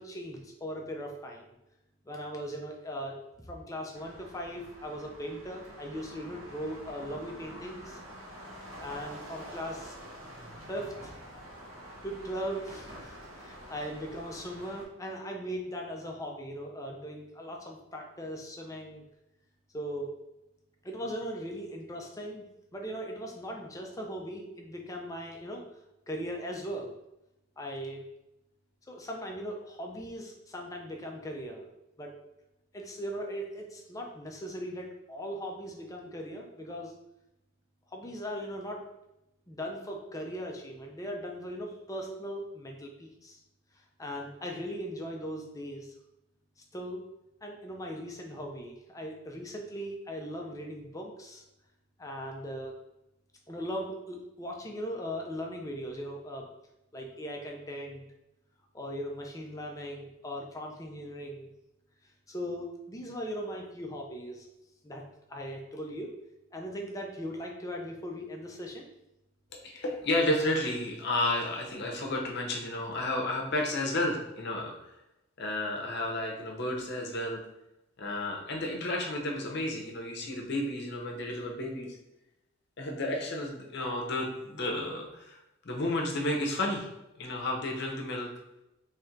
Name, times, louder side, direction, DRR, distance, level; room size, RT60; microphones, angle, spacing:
voice 1, 0.0-1.6 2.1-8.0 8.8-9.9 10.7-11.2 12.0-19.0 19.7-20.2 20.8-22.4 22.7-25.7 26.1-26.9 27.6-28.0 28.9-31.7 32.0-32.2 32.7-36.9 37.9-38.8 39.5-43.4 44.0-45.9 46.7-47.0 47.4-51.4 52.0-52.8 53.5-56.5 56.9-58.1 58.7-61.5 62.3-64.5 64.8-66.1 66.5-68.9, equal, 15° left, 1 dB, 0.4 m, -39 dB
sound 1, 3.9-14.8, equal, 75° right, 1.0 m, -47 dB
voice 2, 69.5-74.7 75.4-77.4 78.0-81.9 82.8-85.4 85.6-86.9 87.2-88.3, left 1 dB, 50° left, 0 dB, 0.7 m, -32 dB
3.2 x 2.5 x 4.4 m, 0.90 s
head